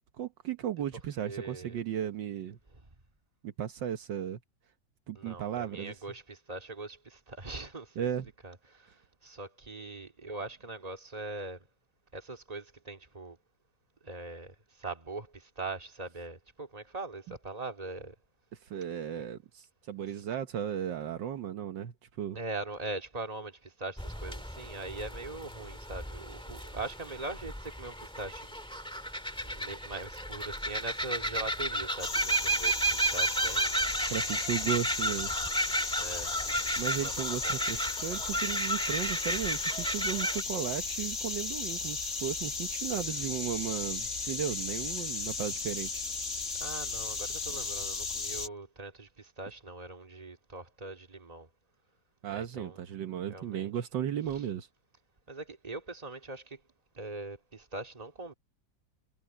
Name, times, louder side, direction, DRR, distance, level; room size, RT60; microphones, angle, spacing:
voice 1, 0.2-2.6 3.4-4.4 5.1-5.9 8.0-8.3 18.6-22.4 34.1-35.3 36.8-46.0 52.2-54.7, right 9 dB, 75° right, 1.7 m, -35 dB
voice 2, 1.2-1.8 2.7-2.8 5.1-8.1 8.4-11.7 12.1-13.4 14.0-18.2 19.2-19.3 20.1-20.2 22.3-28.6 28.8-33.8 36.0-36.3 37.0-37.6 42.9-43.3 46.6-51.5 52.3-52.8 53.3-53.7 54.3-54.4 55.3-56.6 56.9-58.3, right 2 dB, 20° right, 2.2 m, -42 dB
sound 1, 24.0-40.4, right 1 dB, 5° left, 1.7 m, -33 dB
sound 2, 32.0-48.5, left 4 dB, 40° left, 2.4 m, -36 dB
omnidirectional pair, 2.0 m